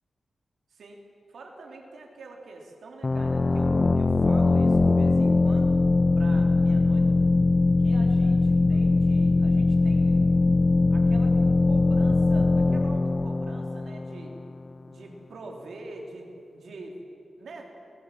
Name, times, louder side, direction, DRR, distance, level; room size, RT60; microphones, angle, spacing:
voice 1, 0.7-1.0 1.3-5.8 6.2-7.2 7.8-10.3 10.9-11.4 11.6-14.3 14.9-17.0 17.4-17.7, right 2 dB, 80° right, 1 dB, 3.1 m, -44 dB
sound 1, 3.0-14.5, left 3 dB, 30° left, 0.5 m, -21 dB
22.5 x 21.0 x 7.5 m, 2.8 s
wide cardioid pair, 150°, 0 cm